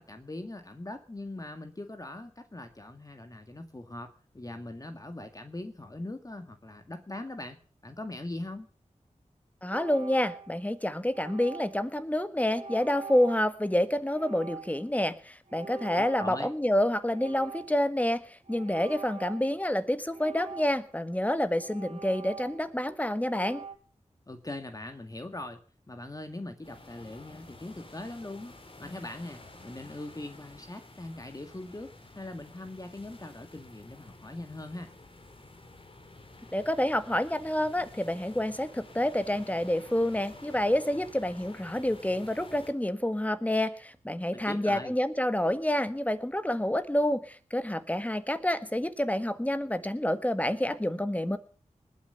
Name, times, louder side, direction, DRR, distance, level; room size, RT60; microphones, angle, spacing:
voice 1, 0.0-7.6 7.8-8.7 16.0-16.5 24.3-25.6 25.9-34.9 44.3-44.9, left 2 dB, 30° left, 6 dB, 1.9 m, -41 dB
voice 2, 9.6-23.6 36.5-51.4, left 1 dB, 10° left, 11 dB, 1.6 m, -28 dB
sound 1, 9.7-10.7 11.1-11.9 12.5-13.5 14.1-15.0 15.5-16.8 17.1-17.9 18.5-19.6 20.1-21.0 21.6-22.8 23.2-23.8, right 4 dB, 60° right, 3.0 m, -45 dB
sound 2, 26.6-42.7, left 2 dB, 45° left, 3.0 m, -51 dB
20.0 x 9.4 x 6.9 m, 0.42 s
wide cardioid pair, 65°, 13 cm